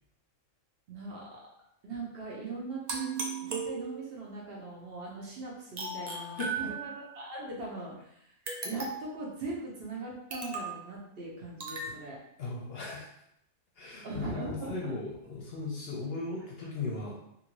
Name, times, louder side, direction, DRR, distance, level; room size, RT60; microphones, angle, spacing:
voice 1, 0.9-1.4 1.8-8.4 8.6-12.2 14.0-14.9, right 3 dB, 55° right, -3 dB, 0.8 m, -40 dB
sound 1, 2.9-4.3 5.8-7.2 8.5-9.2 10.3-10.8 11.6-11.9, right 4 dB, 70° right, 0.4 m, -36 dB
voice 2, 6.4-6.7 12.4-13.1 13.8-17.1, left 3 dB, 60° left, -2 dB, 0.7 m, -37 dB
2.6 x 2.6 x 2.9 m, 0.76 s
omnidirectional pair, 1.3 m